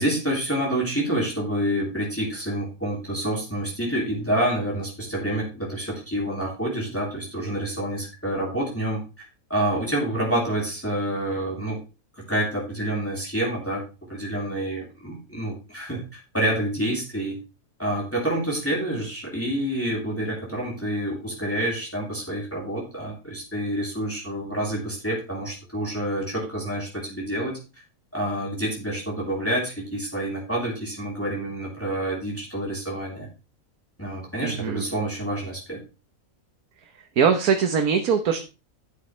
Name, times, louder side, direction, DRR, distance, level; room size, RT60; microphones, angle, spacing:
voice 1, 0.0-11.8 12.1-13.8 14.1-17.4 17.8-27.6 28.1-33.3 34.0-35.8, right 1 dB, 10° left, -3 dB, 3.3 m, -28 dB
voice 2, 34.4-34.8 37.2-38.4, right 6 dB, 85° right, 5 dB, 1.5 m, -21 dB
12.0 x 8.3 x 3.2 m, 0.30 s
omnidirectional pair, 1.5 m